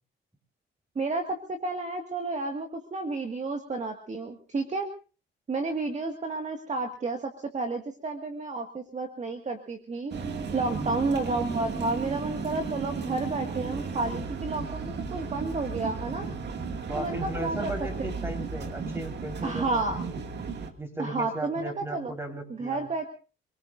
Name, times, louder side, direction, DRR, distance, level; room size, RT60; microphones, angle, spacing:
voice 1, 1.0-4.9 5.5-10.1 10.5-16.3 17.0-17.7 18.0-18.1 19.4-20.0 21.0-22.1 22.5-23.0, right 3 dB, 35° right, 4 dB, 2.0 m, -31 dB
sound 1, 10.1-20.7, right 4 dB, 60° right, 2.3 m, -34 dB
voice 2, 10.7-11.0 16.9-20.1 20.8-22.9, right 1 dB, 10° right, 5 dB, 4.5 m, -36 dB
28.5 x 19.0 x 2.6 m, 0.36 s
cardioid pair, 90°, 20 cm